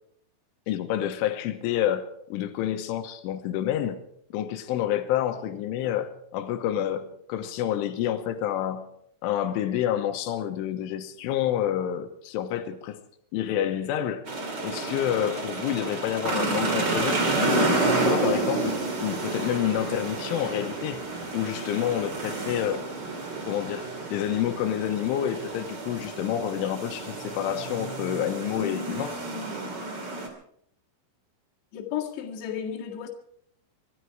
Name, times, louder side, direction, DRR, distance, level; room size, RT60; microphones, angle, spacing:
voice 1, 0.7-4.0 4.3-8.9 9.2-13.0 13.3-14.2 14.6-21.0 21.3-22.8 23.5-29.2, left 11 dB, 85° left, 3.5 m, -28 dB
sound 1, 14.2-30.3, right 3 dB, 30° right, 2.1 m, -30 dB
voice 2, 31.7-33.1, left 9 dB, 65° left, 3.9 m, -33 dB
24.0 x 12.5 x 4.7 m
omnidirectional pair, 5.5 m